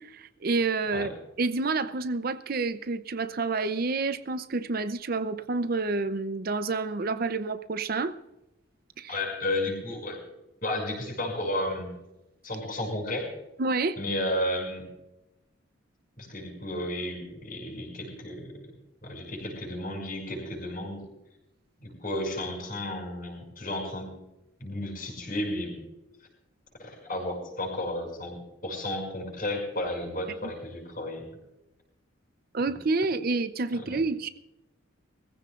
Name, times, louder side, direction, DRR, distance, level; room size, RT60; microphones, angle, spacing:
voice 1, 0.0-8.2 9.0-9.2 13.6-14.0 30.4-30.5 32.5-34.3, right 3 dB, 45° right, 11 dB, 0.5 m, -29 dB
voice 2, 9.1-10.2 10.6-11.9 12.4-13.3 14.0-14.8 16.2-18.5 19.0-21.0 21.8-24.1 24.6-25.8 26.8-28.4 28.6-31.3 33.7-34.0, left 1 dB, 40° left, 2 dB, 5.6 m, -33 dB
21.5 x 15.0 x 2.4 m, 0.95 s
head